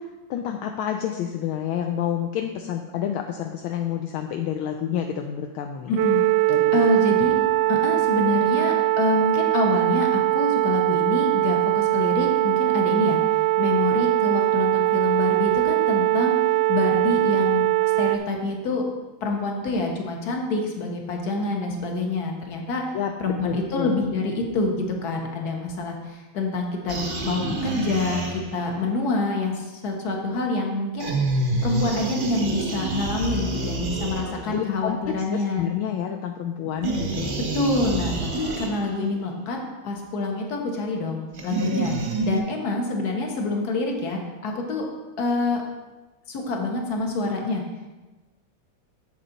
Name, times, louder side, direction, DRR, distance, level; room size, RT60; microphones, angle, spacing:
voice 1, 0.0-5.9 6.5-6.8 22.9-23.1 23.4-23.9 34.2-37.3, left 9 dB, 75° left, 5 dB, 1.3 m, -29 dB
voice 2, 5.9-6.3 6.7-7.4 7.7-16.4 16.7-17.7 18.0-18.9 19.2-22.9 23.2-31.1 31.6-35.7 36.6-36.7 37.3-44.9 45.2-45.6 46.3-47.6, left 3 dB, 50° left, 1 dB, 1.6 m, -26 dB
sound 1, 6.0-18.2, right 18 dB, 75° right, 1.1 m, -21 dB
sound 2, 26.9-28.8 31.0-34.7 36.8-39.1 41.3-42.4, right 2 dB, 35° right, 0.8 m, -28 dB
8.4 x 7.5 x 4.0 m, 1.2 s
omnidirectional pair, 2.4 m